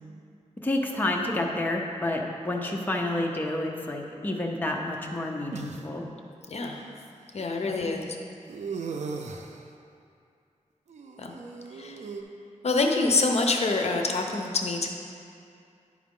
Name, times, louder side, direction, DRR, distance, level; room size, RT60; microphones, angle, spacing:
voice 1, 0.6-6.1 7.6-7.7, left 1 dB, 15° left, 0 dB, 0.6 m, -29 dB
sound 1, 4.6-5.8 6.8-6.9 8.5-9.6 10.9-12.2, right 5 dB, 65° right, 0.5 m, -38 dB
voice 2, 6.5-6.8 7.3-8.1 11.2-11.3 11.8-12.0 12.6-14.9, left 3 dB, 55° left, 2 dB, 0.6 m, -26 dB
10.5 x 4.9 x 3.7 m, 2.4 s
wide cardioid pair, 120°, 13 cm